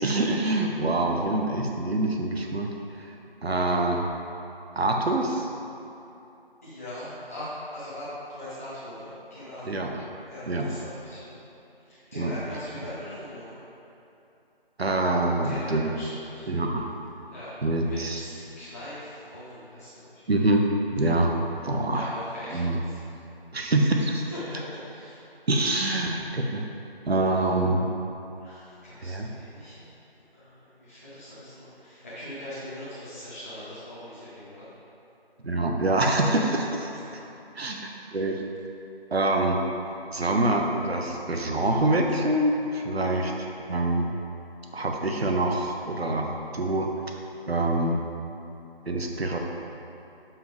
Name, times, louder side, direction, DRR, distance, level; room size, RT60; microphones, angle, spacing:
voice 1, 0.0-2.7 3.0-3.1 3.4-4.1 4.8-5.5 9.7-9.9 10.5-10.7 12.2-12.3 14.8-15.9 16.5-16.9 17.6-18.2 20.3-21.3 21.6-22.1 22.5-22.8 23.5-24.3 25.5-26.7 27.1-27.9 29.0-29.3 35.4-36.9 37.6-38.4 39.1-39.6 40.1-43.3 43.7-44.1 44.7-46.9 47.5-48.0 48.9-49.4, right 2 dB, 85° right, 2 dB, 0.9 m, -25 dB
voice 2, 6.6-9.8 10.3-11.4 11.8-13.6 15.4-16.5 17.3-20.3 21.9-23.0 24.3-25.2 27.4-27.5 28.3-29.9 30.3-34.7 36.8-37.2, left 1 dB, 15° left, -14 dB, 0.9 m, -41 dB
7.2 x 5.8 x 3.3 m, 3.0 s
figure-of-eight pair, 165°, 30 cm